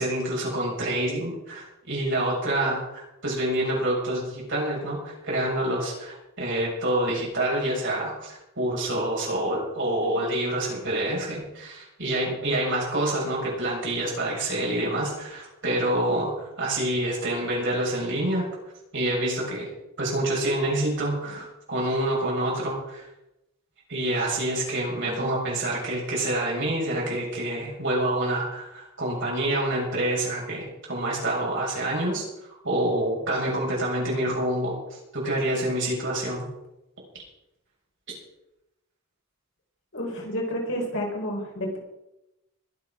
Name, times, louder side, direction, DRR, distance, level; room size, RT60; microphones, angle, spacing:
voice 1, 0.0-18.5 18.9-19.7 20.0-23.1 23.9-32.2 32.6-36.5, right 1 dB, 55° right, -3 dB, 6.9 m, -27 dB
voice 2, 39.9-41.8, equal, 60° left, 0 dB, 4.6 m, -30 dB
21.5 x 7.6 x 6.1 m, 0.92 s
head